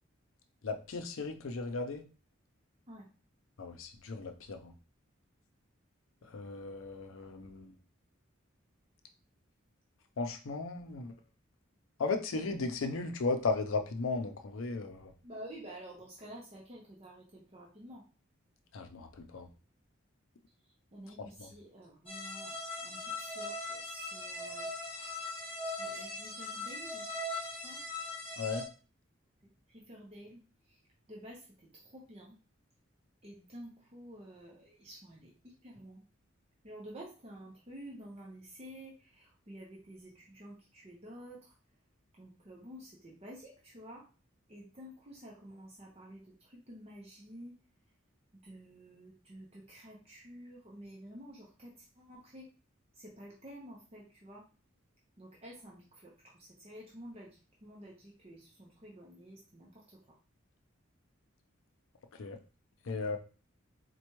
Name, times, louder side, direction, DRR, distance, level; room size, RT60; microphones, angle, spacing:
voice 1, 0.6-2.0 3.6-4.7 6.3-7.7 10.2-11.1 12.0-15.1 18.7-19.5 21.4-21.5 28.4-28.7 62.2-62.4 62.9-63.2, left 3 dB, 85° left, 6 dB, 0.5 m, -36 dB
voice 2, 15.2-18.0 20.9-22.5 22.8-23.8 24.1-25.2 25.7-27.0 27.4-27.8 29.7-30.4 31.1-31.4 31.9-32.3 33.2-36.0 36.6-41.5 42.2-44.0 44.5-46.2 46.5-47.6 48.4-52.4 53.0-54.4 55.2-59.8, right 1 dB, 30° right, -3 dB, 0.7 m, -50 dB
sound 1, 22.1-28.6, left 2 dB, 30° left, 0.8 m, -40 dB
4.3 x 2.2 x 3.0 m, 0.35 s
head